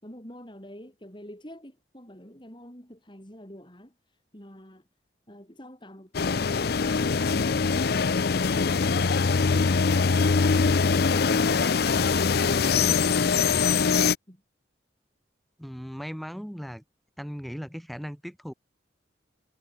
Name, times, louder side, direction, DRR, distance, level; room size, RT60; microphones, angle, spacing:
voice 1, 0.0-4.9 14.3-14.4, equal, 25° left, 6.3 m, -46 dB
sound 1, 6.1-14.2, left 5 dB, 55° left, 0.5 m, -23 dB
voice 2, 15.6-16.8 17.2-18.5, equal, ahead, 1.8 m, -37 dB
head